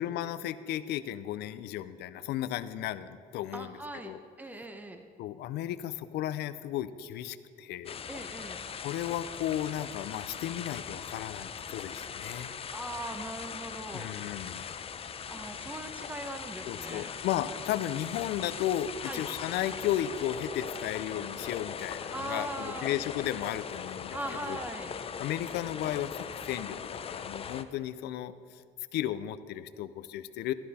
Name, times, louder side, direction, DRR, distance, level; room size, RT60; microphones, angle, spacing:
voice 1, 0.0-3.8 4.0-4.2 5.2-8.0 8.8-12.5 13.9-14.7 16.7-24.6 25.2-28.6 28.9-30.5, left 12 dB, 80° left, 13 dB, 0.5 m, -34 dB
voice 2, 3.5-4.1 4.4-5.0 8.1-8.6 12.7-14.3 15.3-17.1 19.1-19.2 22.1-22.9 24.1-24.9, right 2 dB, 10° right, 6 dB, 0.9 m, -40 dB
sound 1, 7.9-27.6, left 7 dB, 35° left, 0.6 m, -40 dB
13.5 x 11.5 x 4.2 m, 2.3 s
cardioid pair, 110°, 17 cm